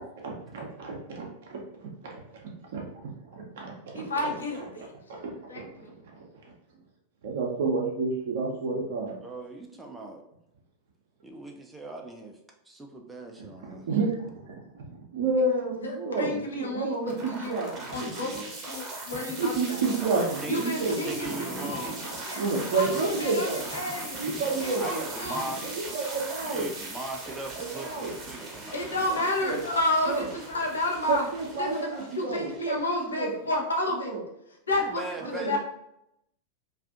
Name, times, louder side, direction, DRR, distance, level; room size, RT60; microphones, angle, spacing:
voice 1, 0.0-1.6 2.7-4.3 5.2-5.6 6.1-6.2 7.2-9.2 13.6-18.5 19.4-20.2 20.5-21.0 21.3-21.7 22.3-23.6 24.1-25.1 25.6-26.7 27.5-28.1 29.4-29.6 30.1-30.3 31.1-33.3 34.0-34.2 35.2-35.6, right 3 dB, 55° right, -1 dB, 0.6 m, -30 dB
voice 2, 3.9-4.9 5.5-5.9 15.8-16.9 17.2-17.6 17.9-18.3 18.6-19.8 20.5-21.9 22.3-22.4 22.7-22.9 23.2-24.2 24.6-25.5 28.7-31.3 31.6-34.1 34.7-35.0 35.3-35.6, left 1 dB, 70° left, 0 dB, 0.6 m, -30 dB
voice 3, 9.2-10.2 11.2-12.4 12.7-13.9 20.0-20.7 21.0-22.1 24.8-25.6 26.4-29.0 34.8-35.6, right 1 dB, 10° right, 1 dB, 0.4 m, -39 dB
sound 1, 17.0-33.1, right 2 dB, 30° right, 0.8 m, -39 dB
2.4 x 2.4 x 2.5 m, 0.81 s
figure-of-eight pair, 90°, 0 cm